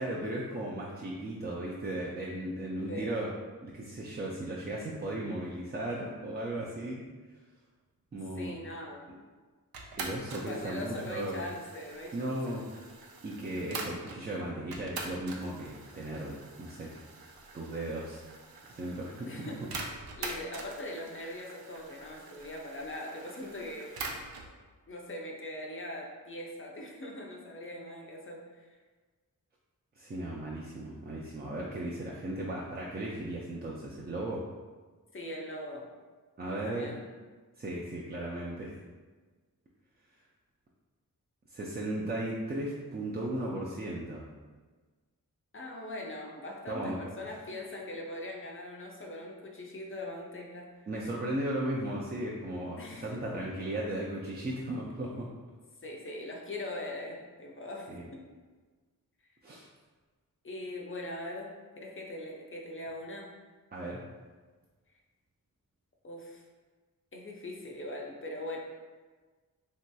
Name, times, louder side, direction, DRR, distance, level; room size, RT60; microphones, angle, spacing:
voice 1, 0.0-3.3 3.6-7.0 8.1-8.6 10.0-11.4 12.1-12.6 13.2-16.9 17.5-18.2 18.7-19.1 19.4-19.5 30.0-34.4 36.4-36.9 37.6-38.7 41.5-44.2 46.7-47.0 50.9-55.3 57.9-58.0 59.4-59.7 63.7-64.0, right 1 dB, 30° right, -4 dB, 0.4 m, -36 dB
voice 2, 8.4-9.1 10.5-12.4 19.2-23.9 24.9-28.7 35.1-35.9 36.4-37.0 45.5-50.7 52.8-53.1 55.8-58.2 60.4-63.3 66.0-66.4 67.1-68.6, left 1 dB, 35° left, -1 dB, 0.5 m, -41 dB
sound 1, 9.7-14.2 14.7-24.5, right 3 dB, 85° right, 0.5 m, -44 dB
2.9 x 2.7 x 2.2 m, 1.4 s
cardioid pair, 55°, 36 cm